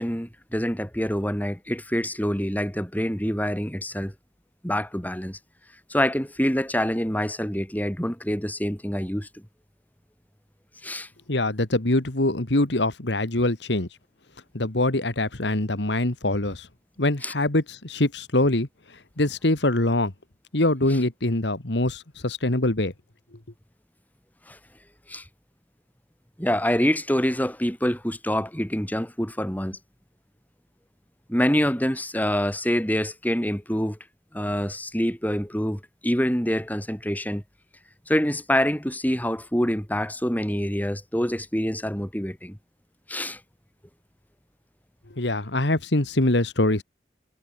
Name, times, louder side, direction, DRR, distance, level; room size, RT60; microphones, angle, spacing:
voice 1, 0.0-4.1 4.6-5.4 5.9-9.4 10.8-11.1 17.2-17.3 24.5-24.6 25.1-25.2 26.4-29.8 31.3-34.0 34.3-37.4 38.1-42.6 43.1-43.4, equal, 10° left, 6.7 m, -26 dB
voice 2, 11.3-13.9 14.5-16.7 17.0-18.7 19.2-20.1 20.5-22.9 45.2-46.8, left 2 dB, 70° left, 2.1 m, -23 dB
head